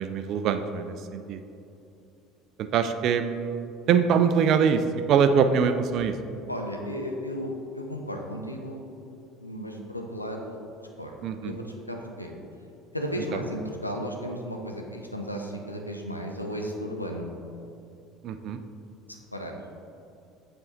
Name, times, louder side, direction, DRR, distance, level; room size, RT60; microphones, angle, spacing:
voice 1, 0.0-1.4 2.6-4.8 5.1-6.2 11.2-11.6 18.2-18.6, right 7 dB, 45° right, 8 dB, 0.3 m, -23 dB
voice 2, 6.5-8.8 9.4-10.6 11.0-11.1 11.4-12.3 12.9-17.3 19.3-19.5, equal, 90° left, 2 dB, 0.5 m, -34 dB
7.5 x 4.4 x 3.9 m, 2.6 s
figure-of-eight pair, 65°, 0 cm